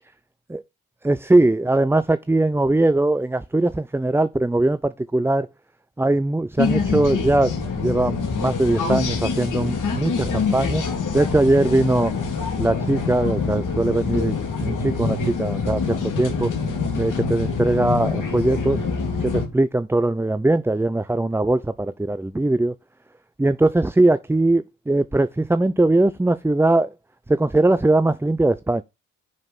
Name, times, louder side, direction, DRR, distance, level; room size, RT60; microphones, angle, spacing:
voice 1, 1.0-5.5 6.0-10.8 11.1-12.1 12.6-14.3 14.6-16.5 17.0-18.8 19.2-22.7 23.4-26.9 27.3-28.8, right 2 dB, 5° right, 0.6 m, -20 dB
sound 1, 6.6-19.4, left 5 dB, 55° left, 3.5 m, -25 dB
9.6 x 5.3 x 5.6 m
figure-of-eight pair, 40°, 38 cm